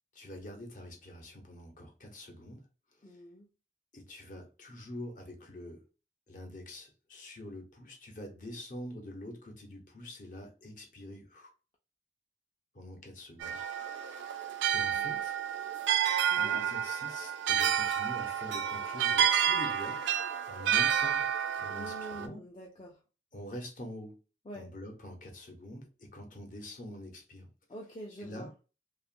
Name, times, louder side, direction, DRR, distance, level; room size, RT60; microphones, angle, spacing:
voice 1, 0.1-2.6 2.9-3.2 3.9-5.8 6.3-11.5 12.7-13.6 14.0-14.2 14.7-15.3 16.4-21.2 21.6-22.4 23.3-24.2 24.5-27.5 28.2-28.5, left 1 dB, 45° left, 2 dB, 0.8 m, -46 dB
voice 2, 3.0-3.5 14.9-15.1 16.3-16.6 21.7-23.0 24.5-24.7 27.7-28.5, equal, 25° left, -2 dB, 0.4 m, -46 dB
sound 1, 13.4-22.3, right 9 dB, 80° right, 0.3 m, -30 dB
2.8 x 2.4 x 2.5 m, 0.32 s
head